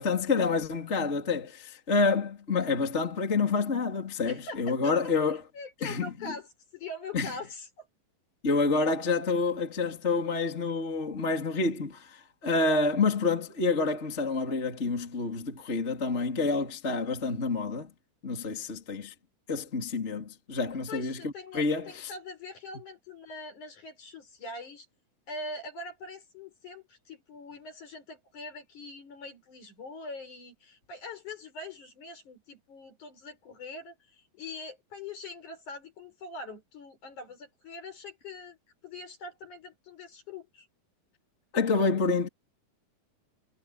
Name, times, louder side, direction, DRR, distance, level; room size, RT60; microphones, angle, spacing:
voice 1, 0.0-5.4 5.8-6.3 7.1-7.3 8.4-17.9 18.2-19.1 19.5-22.1 41.5-42.3, left 4 dB, 20° left, 3.3 m, -28 dB
voice 2, 4.2-5.1 5.5-6.5 6.7-7.9 20.9-24.9 25.3-38.6 38.8-40.7, left 3 dB, 50° left, 6.3 m, -43 dB
omnidirectional pair, 4.4 m